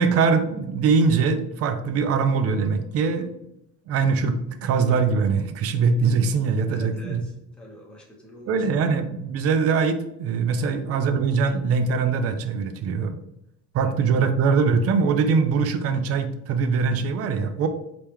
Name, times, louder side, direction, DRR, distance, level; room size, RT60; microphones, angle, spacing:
voice 1, 0.0-3.3 3.9-7.2 8.5-13.2 13.7-17.7, right 5 dB, 55° right, 8 dB, 0.5 m, -22 dB
voice 2, 6.7-8.7 10.6-10.8 13.8-14.2, left 1 dB, 5° left, -3 dB, 0.8 m, -46 dB
4.6 x 3.0 x 3.4 m, 0.81 s
cardioid pair, 165°, 30 cm